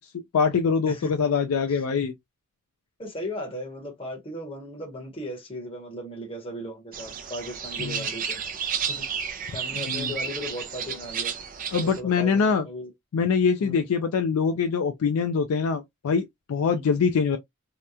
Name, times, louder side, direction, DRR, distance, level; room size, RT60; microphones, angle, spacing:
voice 1, 0.3-2.1 7.8-8.1 9.8-10.1 11.7-12.7 13.1-17.4, left 5 dB, 80° left, 0.4 m, -24 dB
voice 2, 3.0-8.4 8.9-11.4 11.8-12.9 13.6-13.9 16.7-16.8, equal, 25° left, 0.9 m, -37 dB
sound 1, 6.9-12.0, right 7 dB, 40° right, 0.4 m, -32 dB
2.8 x 2.1 x 2.3 m
head